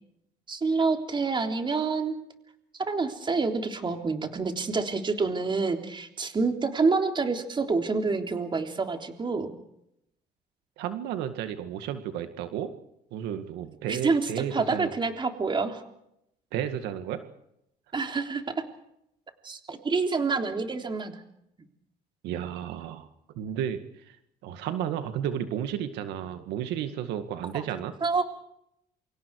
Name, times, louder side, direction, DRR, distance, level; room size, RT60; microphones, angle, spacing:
voice 1, 0.5-2.2 2.9-9.5 13.9-15.8 17.9-18.6 19.4-21.2 27.5-27.6 28.0-28.2, right 4 dB, 30° right, 5 dB, 3.4 m, -27 dB
voice 2, 10.8-12.7 13.1-14.9 16.5-17.2 22.2-23.1 23.4-24.2 24.4-27.9, right 10 dB, 90° right, 8 dB, 2.1 m, -32 dB
28.0 x 26.0 x 4.8 m, 0.79 s
cardioid pair, 110°, 17 cm